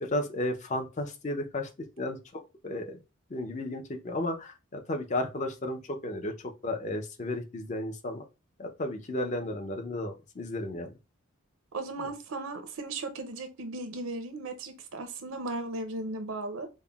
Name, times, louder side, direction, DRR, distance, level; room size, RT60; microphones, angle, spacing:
voice 1, 0.0-1.7 2.0-3.0 3.3-8.2 8.6-10.9, left 1 dB, 35° left, 0.5 m, -33 dB
voice 2, 11.7-16.7, right 2 dB, 80° right, 0.5 m, -36 dB
5.3 x 2.0 x 2.3 m
head